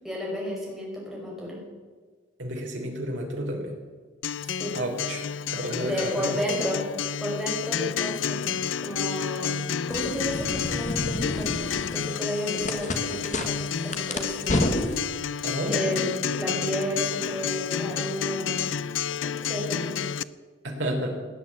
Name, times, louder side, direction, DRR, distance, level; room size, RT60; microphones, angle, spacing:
voice 1, 0.0-1.6 4.4-4.7 5.8-6.8 7.2-8.5 8.8-15.4 15.7-16.1 16.3-18.7 19.2-19.9, equal, ahead, -4 dB, 5.1 m, -32 dB
voice 2, 2.4-3.7 4.7-5.3 5.5-6.5 15.4-16.0 20.6-21.1, right 1 dB, 75° right, -1 dB, 3.5 m, -31 dB
Acoustic guitar, 4.2-20.2, left 7 dB, 80° left, 0.5 m, -30 dB
sound 1, 9.9-15.0, left 1 dB, 40° left, 1.6 m, -31 dB
17.5 x 9.6 x 8.4 m, 1.5 s
head